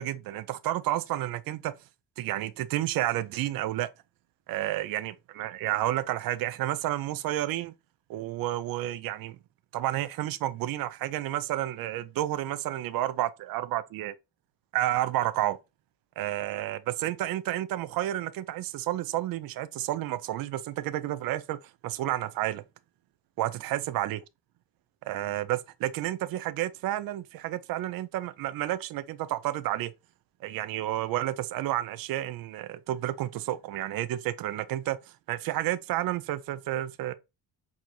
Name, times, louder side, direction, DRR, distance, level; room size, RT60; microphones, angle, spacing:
voice 1, 0.0-1.7 2.2-3.9 4.5-7.7 8.1-9.4 9.7-14.1 14.7-15.6 16.2-21.6 21.8-22.6 23.4-24.2 25.1-29.9 30.4-35.0 35.3-37.1, right 14 dB, 65° right, 0.5 m, -30 dB
6.2 x 2.8 x 2.4 m
cardioid pair, 180°, 38 cm